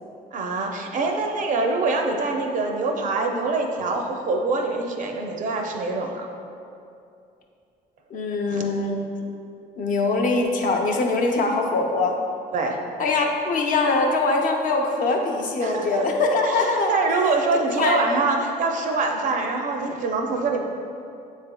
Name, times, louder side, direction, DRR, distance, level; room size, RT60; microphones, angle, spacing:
voice 1, 0.3-6.3 8.5-8.7 12.5-12.8 15.6-16.0 16.4-20.6, right 3 dB, 50° right, 2 dB, 0.5 m, -25 dB
voice 2, 8.1-9.0 9.8-12.2 13.0-17.0 17.7-18.0, left 3 dB, 55° left, 1 dB, 0.6 m, -22 dB
6.3 x 3.3 x 2.2 m, 2.5 s
cardioid pair, 110°, 17 cm